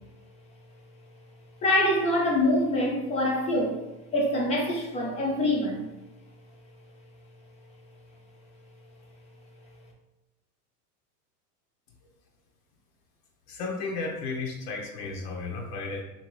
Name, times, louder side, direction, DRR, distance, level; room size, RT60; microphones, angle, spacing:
voice 1, 1.6-3.8 4.1-5.9, left 1 dB, 15° left, -2 dB, 0.4 m, -25 dB
voice 2, 13.5-16.0, left 3 dB, 75° left, 0 dB, 0.8 m, -33 dB
2.8 x 2.7 x 3.0 m, 1.0 s
supercardioid pair, 120°, 47 cm